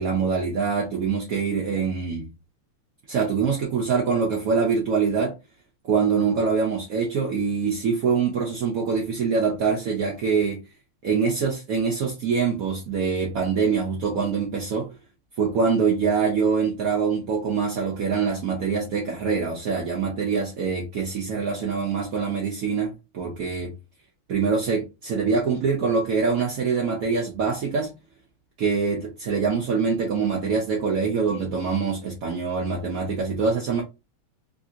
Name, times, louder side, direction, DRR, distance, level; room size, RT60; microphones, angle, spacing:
voice 1, 0.0-2.3 3.1-5.3 5.8-10.6 11.0-15.0 15.4-23.7 24.3-27.9 28.6-33.8, right 5 dB, 70° right, 0.8 m, -24 dB
3.4 x 2.7 x 2.4 m
omnidirectional pair, 2.3 m